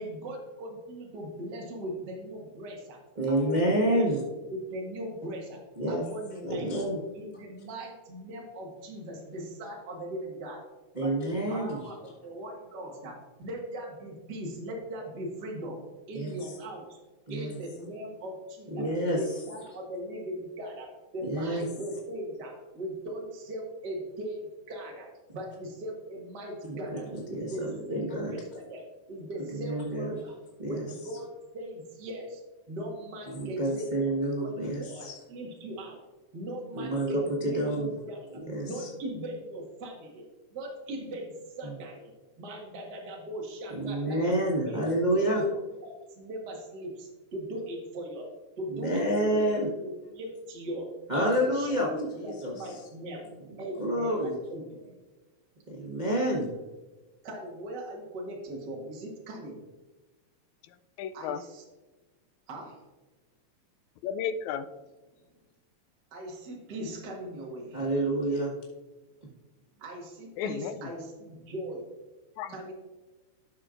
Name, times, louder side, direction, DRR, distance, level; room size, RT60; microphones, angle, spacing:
voice 1, 0.0-3.0 3.3-4.1 4.5-5.6 5.9-6.8 7.1-10.6 11.0-15.8 16.1-17.0 17.3-18.9 19.1-30.3 30.7-32.4 32.7-34.1 34.4-36.0 36.3-40.3 40.5-44.4 44.6-44.8 45.1-45.3 45.8-48.3 48.6-49.5 49.8-50.9 51.1-53.3 53.6-54.9 57.2-59.6 61.1-61.6 62.5-62.8 66.1-67.9 69.8-71.9 72.5-72.7, right 1 dB, 40° right, -1 dB, 1.8 m, -39 dB
voice 2, 3.2-4.2 5.8-6.0 6.4-7.0 10.9-11.8 16.1-16.3 17.3-17.6 18.7-19.2 21.2-21.6 26.7-26.8 27.3-28.3 29.5-30.1 30.6-30.8 33.3-35.1 36.7-37.1 37.4-37.9 38.5-38.9 43.7-45.4 48.7-49.7 51.1-52.5 53.8-54.3 55.7-56.5 67.7-68.5, right 1 dB, 90° right, -4 dB, 0.4 m, -28 dB
voice 3, 60.6-61.4 64.0-64.7 70.4-70.9 72.4-72.7, left 8 dB, 80° left, 11 dB, 1.8 m, -34 dB
12.0 x 6.6 x 2.5 m, 1.2 s
omnidirectional pair, 3.3 m